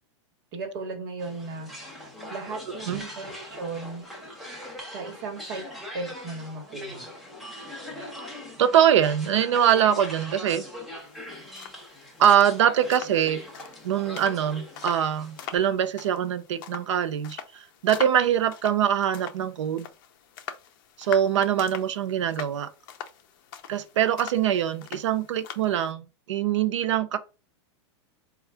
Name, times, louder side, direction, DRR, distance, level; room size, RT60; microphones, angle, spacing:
voice 1, 0.5-4.0 4.9-5.6 5.9-7.1, right 3 dB, 55° right, 1.2 m, -36 dB
sound 1, 1.2-15.6, left 1 dB, ahead, 0.6 m, -41 dB
voice 2, 8.6-10.6 12.2-13.4 13.8-19.9 21.0-22.7 23.7-27.2, right 9 dB, 85° right, 0.6 m, -23 dB
sound 2, 11.0-25.9, left 9 dB, 45° left, 0.5 m, -43 dB
4.3 x 2.3 x 3.4 m
supercardioid pair, 165°, 15 cm